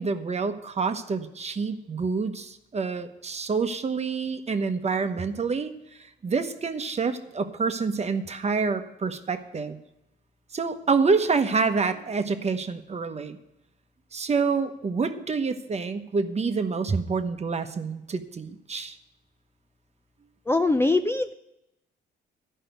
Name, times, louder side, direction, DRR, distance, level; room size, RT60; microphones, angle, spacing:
voice 1, 0.0-5.7 6.2-9.8 10.5-13.4 14.1-18.9, right 4 dB, 35° right, 8 dB, 1.0 m, -27 dB
voice 2, 20.5-21.3, left 2 dB, 10° left, 8 dB, 0.5 m, -22 dB
12.5 x 5.6 x 9.2 m, 0.88 s
cardioid pair, 90°, 20 cm